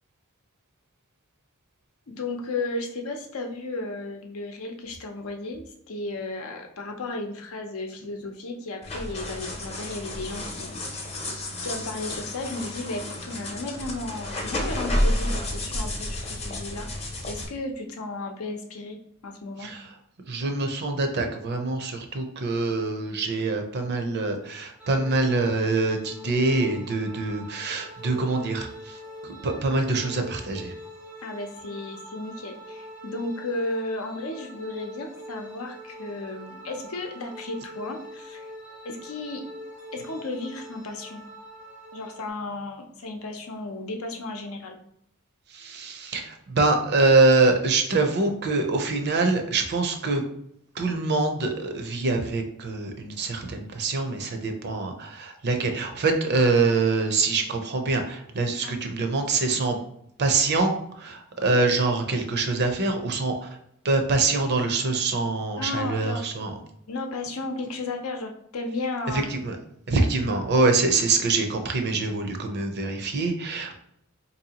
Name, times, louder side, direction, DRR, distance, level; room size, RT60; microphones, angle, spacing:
voice 1, 2.1-11.3 11.6-19.7 31.2-38.5 38.8-39.4 39.9-41.2 41.9-44.8 58.6-58.7 65.6-66.2 66.9-69.3 69.9-70.1, left 2 dB, 70° left, 3 dB, 0.6 m, -34 dB
sound 1, 8.8-17.4, left 1 dB, 30° left, 0.7 m, -31 dB
voice 2, 19.6-19.9 20.3-30.7 45.5-50.2 50.7-59.8 60.2-63.6 63.8-66.5 69.1-69.6 69.9-73.8, right 3 dB, 50° right, 5 dB, 0.6 m, -25 dB
sound 2, 24.8-42.3, equal, 5° right, 0.5 m, -43 dB
4.3 x 2.7 x 2.8 m, 0.72 s
head